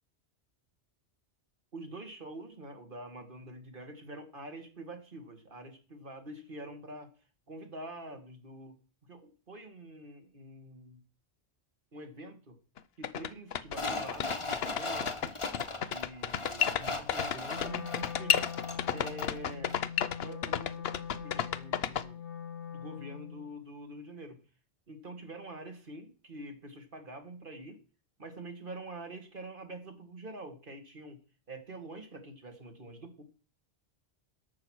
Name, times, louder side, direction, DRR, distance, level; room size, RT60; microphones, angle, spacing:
voice 1, 1.7-7.1 7.5-8.8 9.1-11.0 11.9-12.6 13.0-15.4 15.7-19.8 20.2-22.2 22.7-24.4 24.9-27.8 28.2-31.2 31.5-33.2, right 1 dB, 50° right, 6 dB, 2.1 m, -46 dB
sound 1, 12.8-12.9 13.0-22.0, left 9 dB, 65° left, 0.9 m, -31 dB
sound 2, 13.7-19.4 19.7-19.8, left 3 dB, 30° left, 1.2 m, -38 dB
Wind instrument woodwind instrument, 17.5-23.5, left 7 dB, 85° left, 1.2 m, -42 dB
13.5 x 5.9 x 6.4 m, 0.38 s
omnidirectional pair, 1.1 m